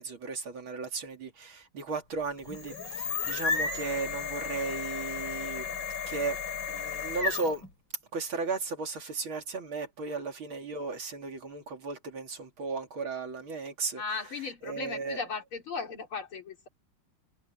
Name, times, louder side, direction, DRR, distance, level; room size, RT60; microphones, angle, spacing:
voice 1, 0.0-5.7 6.1-6.4 6.7-7.6 8.1-14.0 14.7-15.2, right 4 dB, 75° right, 3.6 m, -35 dB
sound 1, 2.4-7.7, left 5 dB, 65° left, 4.8 m, -33 dB
voice 2, 13.9-16.7, left 4 dB, 85° left, 4.6 m, -36 dB
omnidirectional pair, 2.3 m